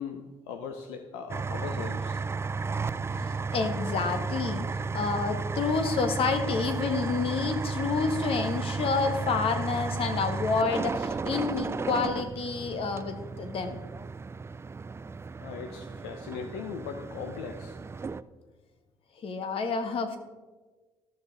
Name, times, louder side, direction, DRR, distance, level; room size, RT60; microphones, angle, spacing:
voice 1, 0.0-2.2 15.4-17.8, left 6 dB, 90° left, 6 dB, 0.7 m, -39 dB
sound 1, 1.3-18.2, right 4 dB, 25° right, 0.4 m, -33 dB
voice 2, 3.2-13.8 19.2-20.2, left 4 dB, 60° left, 7 dB, 1.3 m, -29 dB
13.0 x 6.6 x 4.0 m, 1.3 s
supercardioid pair, 70°, 11 cm